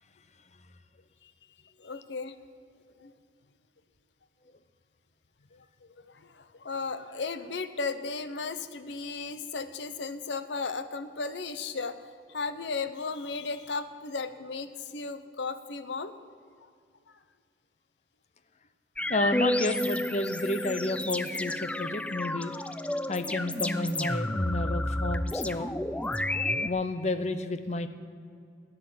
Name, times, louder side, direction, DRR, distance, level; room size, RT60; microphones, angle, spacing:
voice 1, 1.8-2.3 3.0-3.1 5.5-12.0 12.3-16.1, left 4 dB, 80° left, 12 dB, 0.8 m, -35 dB
sound 1, 19.0-26.7, left 1 dB, 5° left, 0.3 m, -31 dB
voice 2, 19.1-22.5 23.1-25.7 26.3-27.9, left 2 dB, 40° left, 11 dB, 0.7 m, -31 dB
12.5 x 8.9 x 7.7 m, 2.3 s
head